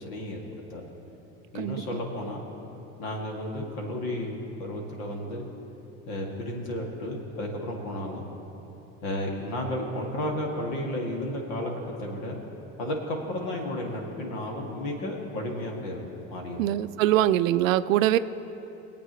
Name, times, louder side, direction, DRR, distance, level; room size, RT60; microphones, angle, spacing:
voice 1, 0.1-0.8 1.5-2.4 3.0-5.5 6.1-8.3 9.0-12.4 12.8-16.6, left 1 dB, 65° left, -1 dB, 2.5 m, -33 dB
voice 2, 16.6-18.2, right 13 dB, 85° right, 15 dB, 0.5 m, -23 dB
22.0 x 8.6 x 3.2 m, 2.9 s
hypercardioid pair, 80°, 39 cm